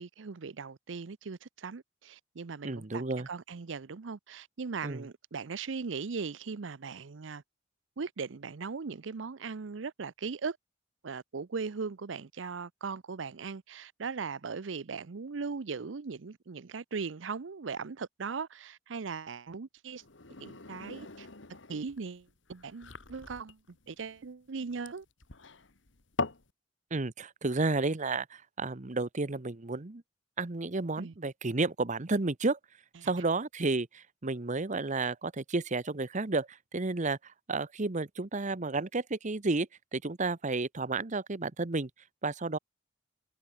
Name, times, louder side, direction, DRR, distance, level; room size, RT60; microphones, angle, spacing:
voice 1, 0.0-7.4 8.0-10.6 11.0-20.0 20.4-21.3 21.7-23.6 23.9-25.1 31.0-31.1 33.0-33.1, right 5 dB, 85° right, 0.6 m, -39 dB
voice 2, 2.6-3.3 4.8-5.0 26.9-30.0 30.4-32.6 33.0-41.9 42.2-42.6, right 3 dB, 40° right, 1.0 m, -32 dB
sound 1, 20.0-26.5, left 3 dB, 80° left, 2.0 m, -41 dB
head